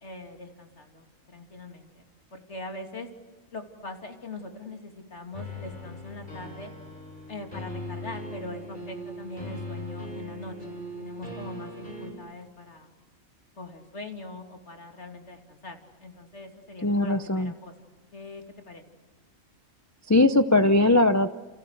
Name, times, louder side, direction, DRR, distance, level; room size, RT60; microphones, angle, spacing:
voice 1, 0.0-3.1 3.5-6.7 7.3-10.6 11.0-12.9 13.6-18.8, left 2 dB, 55° left, 4 dB, 3.2 m, -42 dB
sound 1, 5.3-12.1, left 1 dB, 35° left, 7.4 m, -39 dB
voice 2, 16.8-17.5 20.1-21.3, left 2 dB, 15° left, 9 dB, 0.6 m, -20 dB
30.0 x 29.0 x 6.6 m, 1.3 s
omnidirectional pair, 1.4 m